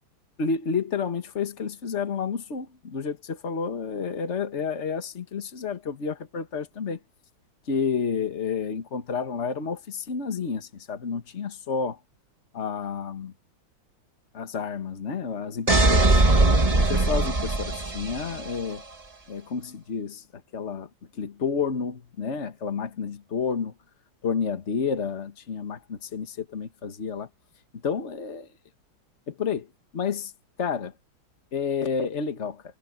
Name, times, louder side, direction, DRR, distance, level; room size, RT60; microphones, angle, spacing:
voice 1, 0.4-7.0 7.7-12.0 12.5-13.3 14.3-16.2 16.9-18.8 19.3-20.2 20.5-20.9 21.2-23.7 24.2-27.3 27.8-28.5 29.3-29.7 29.9-30.3 30.6-30.9 31.5-32.6, left 6 dB, 35° left, 1.8 m, -30 dB
sound 1, 15.7-18.5, right 2 dB, 20° right, 1.4 m, -20 dB
omnidirectional pair, 2.3 m